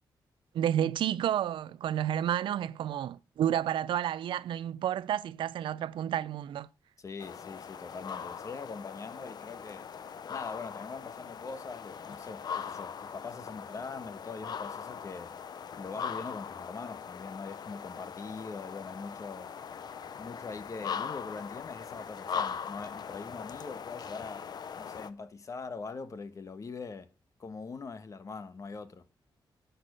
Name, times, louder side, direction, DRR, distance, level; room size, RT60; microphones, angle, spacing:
voice 1, 0.5-6.7, right 10 dB, 90° right, 0.5 m, -30 dB
voice 2, 7.0-9.9 10.3-15.3 15.8-19.5 20.2-24.5 24.8-27.1 27.4-29.0, left 4 dB, 40° left, 1.2 m, -42 dB
sound 1, 7.2-25.1, left 7 dB, 55° left, 0.8 m, -40 dB
11.0 x 6.9 x 6.8 m
cardioid pair, 115°, 8 cm